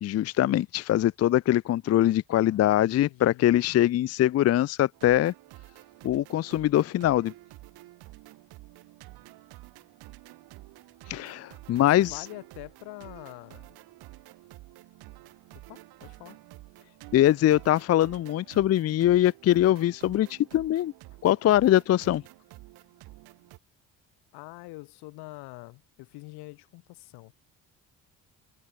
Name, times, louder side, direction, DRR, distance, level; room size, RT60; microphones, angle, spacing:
voice 1, 0.0-5.3 6.0-7.3 11.1-12.3 17.1-20.9 21.2-22.2, left 13 dB, 40° left, 0.5 m, -23 dB
voice 2, 2.3-3.5 11.7-13.7 15.7-16.4 24.3-27.3, left 23 dB, 80° left, 1.6 m, -45 dB
sound 1, 4.9-23.6, right 18 dB, 75° right, 1.5 m, -50 dB
supercardioid pair, 60°, 38 cm